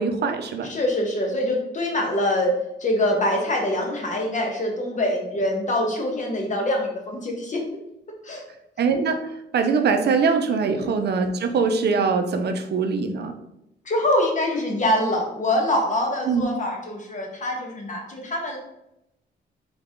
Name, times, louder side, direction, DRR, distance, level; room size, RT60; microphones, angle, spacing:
voice 1, 0.0-0.7 8.8-9.2 9.5-13.3 16.3-16.5, right 5 dB, 60° right, 7 dB, 0.5 m, -22 dB
voice 2, 0.7-2.5 2.8-7.6 8.2-8.4 10.7-10.9 13.8-18.6, left 1 dB, 40° left, 1 dB, 1.3 m, -24 dB
3.9 x 3.5 x 3.6 m, 0.84 s
cardioid pair, 95°, 19 cm